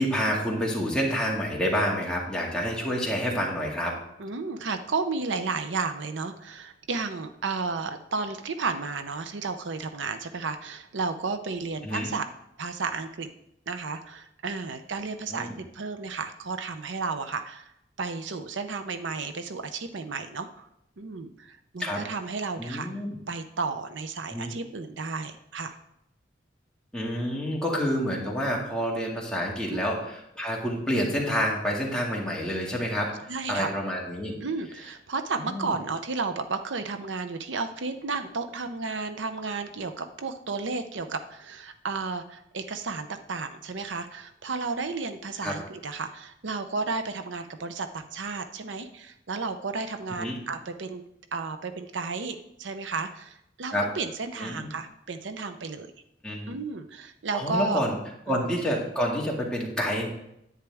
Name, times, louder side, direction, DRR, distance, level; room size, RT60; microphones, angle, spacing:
voice 1, 0.0-4.0 11.8-12.1 15.3-15.6 21.8-22.0 22.6-23.2 24.3-24.5 26.9-33.1 33.5-34.3 35.4-35.8 45.4-45.5 50.2-50.4 53.7-53.9 54.4-54.7 56.2-56.5 57.3-58.0 58.3-60.1, equal, 5° left, -3 dB, 1.9 m, -28 dB
voice 2, 4.2-12.3 12.6-13.3 13.7-17.7 18.0-20.7 21.0-22.9 23.3-25.8 29.7-29.8 33.3-33.7 34.4-51.0 51.3-55.9 56.5-57.8 58.3-58.5, right 4 dB, 85° right, 9 dB, 0.7 m, -33 dB
10.0 x 9.1 x 3.5 m, 0.79 s
head